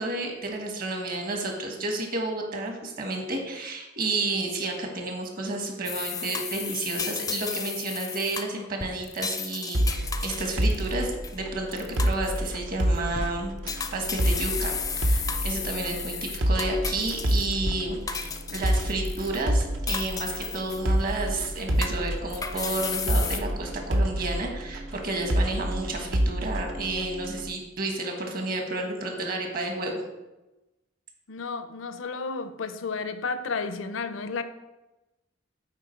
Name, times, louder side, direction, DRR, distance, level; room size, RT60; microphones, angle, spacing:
voice 1, 0.0-30.0, right 2 dB, 50° right, 1.4 m, -31 dB
sound 1, 5.8-11.4 11.7-12.5 13.0-13.3 13.7-17.8 18.1-19.4 19.9-21.1 21.4-23.4, left 6 dB, 20° left, 0.4 m, -34 dB
sound 2, 9.7-27.5, equal, 75° right, 0.8 m, -28 dB
voice 2, 31.3-34.4, left 4 dB, 80° left, 0.6 m, -32 dB
8.1 x 4.5 x 4.5 m
head